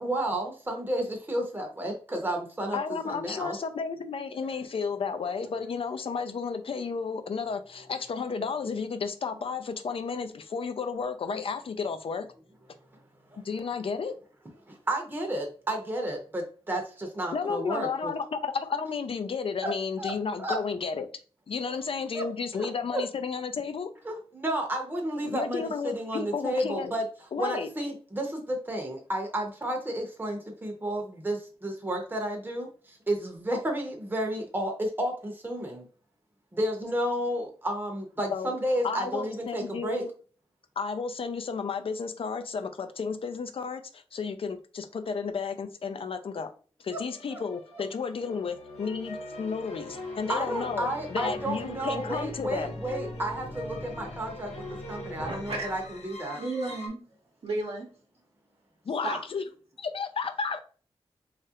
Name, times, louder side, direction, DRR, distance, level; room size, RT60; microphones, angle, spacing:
voice 1, 0.0-2.8 3.0-3.6 14.7-18.1 19.6-19.7 20.0-20.1 20.4-20.6 21.7-21.8 22.1-22.2 22.5-23.0 24.0-27.0 27.4-35.8 36.5-40.0 46.9-47.0 47.3-47.4 47.7-47.8 50.3-56.4, right 1 dB, 20° right, 0.7 m, -32 dB
voice 2, 2.7-12.3 13.4-14.2 17.3-21.1 21.5-23.9 25.2-26.9 27.3-27.7 38.3-38.5 38.8-40.1 40.8-46.5 46.8-52.7 58.9-59.4 59.8-60.6, left 5 dB, 60° left, 0.4 m, -32 dB
sound 1, 47.1-56.9, left 1 dB, 85° left, 0.8 m, -41 dB
voice 3, 55.2-55.8 56.3-57.0 57.4-57.9 59.0-59.2, right 2 dB, 75° right, 0.8 m, -33 dB
3.1 x 2.4 x 2.8 m
cardioid pair, 60°, 10 cm